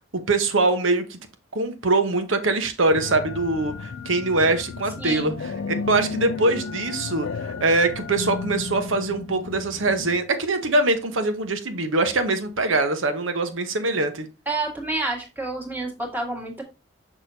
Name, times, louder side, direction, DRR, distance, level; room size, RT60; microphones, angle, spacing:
voice 1, 0.3-1.2 1.5-5.3 5.9-14.3, right 2 dB, 85° right, 1.0 m, -23 dB
sound 1, 2.9-10.2, left 4 dB, 85° left, 0.5 m, -33 dB
voice 2, 5.0-5.4 14.5-16.6, right 2 dB, 10° right, 1.7 m, -29 dB
6.3 x 5.8 x 2.7 m
head